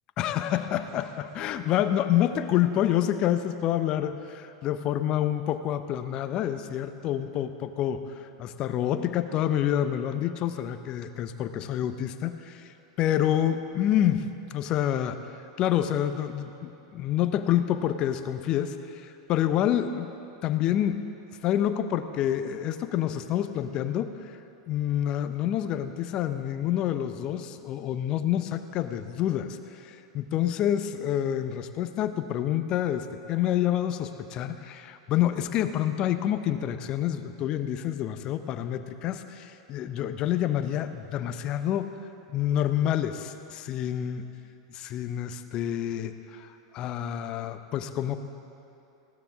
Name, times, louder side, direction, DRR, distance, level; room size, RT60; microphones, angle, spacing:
voice 1, 0.2-15.2 15.6-20.1 20.4-21.0 21.4-24.4 24.7-41.9 42.3-44.3 44.7-48.2, left 11 dB, 40° left, 10 dB, 0.8 m, -28 dB
20.0 x 17.0 x 3.6 m, 2.8 s
figure-of-eight pair, 90°, 2 cm